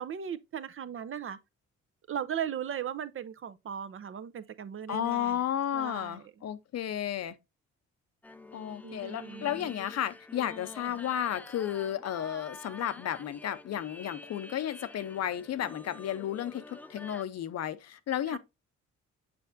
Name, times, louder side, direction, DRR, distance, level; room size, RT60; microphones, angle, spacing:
voice 1, 0.0-1.4 2.1-5.4 5.7-6.3 8.8-9.7 18.3-18.4, right 8 dB, 45° right, 0.6 m, -37 dB
voice 2, 4.9-7.4 8.5-18.4, left 10 dB, 60° left, 0.7 m, -33 dB
sound 1, 8.2-17.2, left 2 dB, 5° left, 0.4 m, -48 dB
6.8 x 5.6 x 2.5 m
cardioid pair, 90°, 30 cm